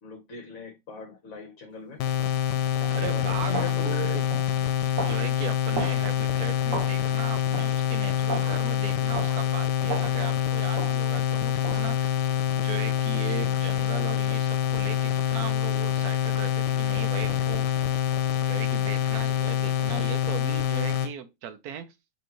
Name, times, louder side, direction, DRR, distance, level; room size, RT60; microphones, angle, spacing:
voice 1, 0.0-2.0 2.9-4.3, left 4 dB, 60° left, 1.4 m, -40 dB
sound 1, 2.0-21.1, left 10 dB, 90° left, 1.2 m, -26 dB
sound 2, 2.8-3.0 3.5-3.8 4.3-4.5 5.0-5.2 5.7-6.0 6.7-6.9 7.5-7.7 8.3-8.5 9.1-9.4 9.9-10.1 10.7-11.0 11.6-11.8, right 4 dB, 55° right, 1.3 m, -33 dB
voice 2, 2.9-4.2 4.9-12.2 12.6-17.7 18.4-21.9, right 8 dB, 70° right, 1.1 m, -38 dB
5.5 x 3.1 x 2.9 m
omnidirectional pair, 1.8 m